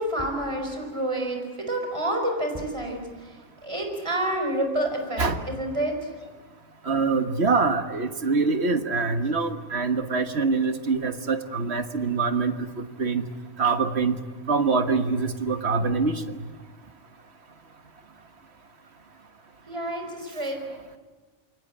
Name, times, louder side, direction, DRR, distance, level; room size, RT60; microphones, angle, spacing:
voice 1, 0.0-5.9 19.7-20.6, right 1 dB, 20° right, 3 dB, 4.8 m, -29 dB
voice 2, 6.8-13.2 13.6-14.2 14.5-16.4, right 4 dB, 50° right, 8 dB, 1.7 m, -24 dB
27.5 x 24.0 x 8.7 m, 1.3 s
omnidirectional pair, 1.4 m